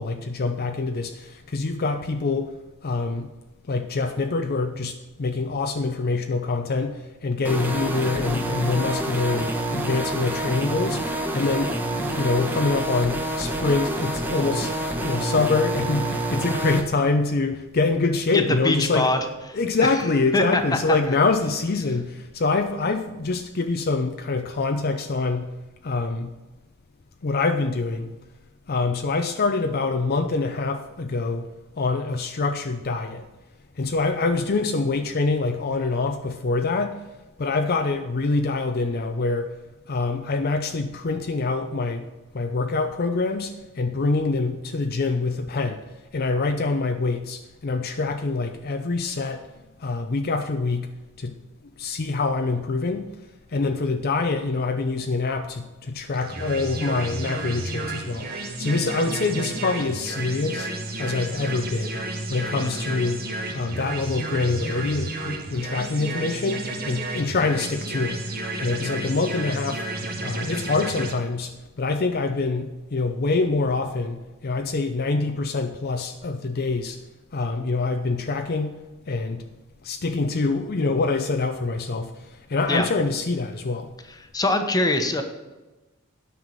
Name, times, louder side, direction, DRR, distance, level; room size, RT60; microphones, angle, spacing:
voice 1, 0.0-2.5 2.8-3.3 3.7-11.7 12.2-19.1 19.5-25.5 25.8-26.3 27.2-28.1 28.7-31.5 31.8-33.2 33.8-37.0 37.4-39.5 39.9-42.1 42.3-45.8 46.1-49.4 49.8-50.9 51.2-51.4 51.8-53.1 53.5-58.3 58.6-60.7 61.0-62.0 62.3-63.3 63.5-68.2 68.6-69.8 70.2-77.0 77.3-78.8 79.1-79.4 79.8-82.1 82.5-83.9, left 3 dB, 50° left, 6 dB, 0.6 m, -25 dB
sound 1, 7.4-16.8, right 1 dB, 10° right, 1.2 m, -27 dB
voice 2, 18.6-19.2 19.5-19.6 20.3-20.6 20.9-21.0 62.6-62.8 82.7-82.9 84.3-85.2, left 2 dB, 20° left, 6 dB, 1.1 m, -22 dB
sound 2, 56.1-71.1, right 2 dB, 45° right, 1.7 m, -32 dB
9.4 x 5.7 x 7.4 m, 1.1 s
head